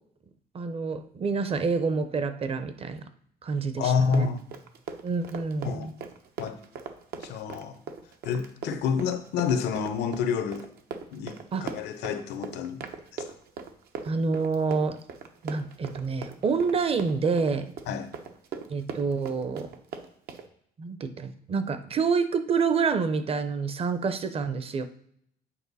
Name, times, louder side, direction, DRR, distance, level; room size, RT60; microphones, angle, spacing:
voice 1, 0.5-3.0 3.4-4.3 5.0-5.9 11.5-11.7 14.0-15.0 15.4-17.7 18.7-19.7 20.8-24.8, right 5 dB, 35° right, 0.7 m, -27 dB
voice 2, 3.8-4.4 5.6-5.9 6.4-6.6 7.2-7.8 8.2-10.7 11.1-12.8 13.1-13.2 17.9-18.1, left 6 dB, 80° left, 0.9 m, -28 dB
Run, 4.0-20.5, right 6 dB, 70° right, 0.9 m, -40 dB
8.7 x 4.5 x 4.1 m
cardioid pair, 110°, 17 cm